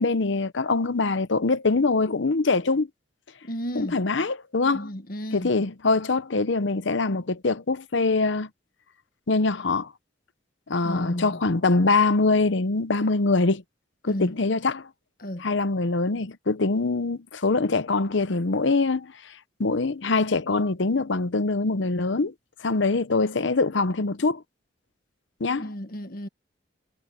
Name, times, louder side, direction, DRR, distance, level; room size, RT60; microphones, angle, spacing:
voice 1, 0.0-2.9 3.8-4.9 5.3-8.5 9.3-9.9 10.7-13.6 14.0-14.9 15.4-19.1 19.6-22.3 22.6-24.4 25.4-25.7, left 3 dB, 70° left, 0.8 m, -23 dB
voice 2, 3.4-4.0 4.7-5.5 10.8-11.4 14.1-14.4 15.2-15.5 25.6-26.3, equal, 45° left, 1.7 m, -33 dB
head